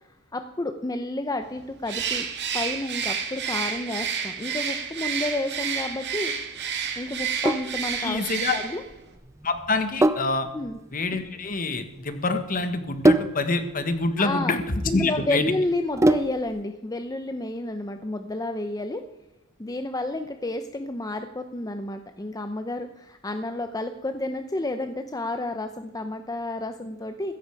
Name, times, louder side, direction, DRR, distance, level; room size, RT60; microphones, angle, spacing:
voice 1, 0.3-2.3 2.5-6.3 7.0-8.2 8.5-8.8 10.5-10.8 14.2-19.0 19.6-27.3, left 2 dB, 15° left, 7 dB, 0.7 m, -30 dB
Bird, 1.8-8.9, right 7 dB, 55° right, 2.1 m, -30 dB
Sink (filling or washing), 7.1-16.6, right 1 dB, 15° right, 0.4 m, -26 dB
voice 2, 8.0-8.6 9.4-10.5 10.9-14.6 14.9-15.4, left 3 dB, 40° left, 8 dB, 1.6 m, -26 dB
16.0 x 13.5 x 4.8 m, 0.95 s
head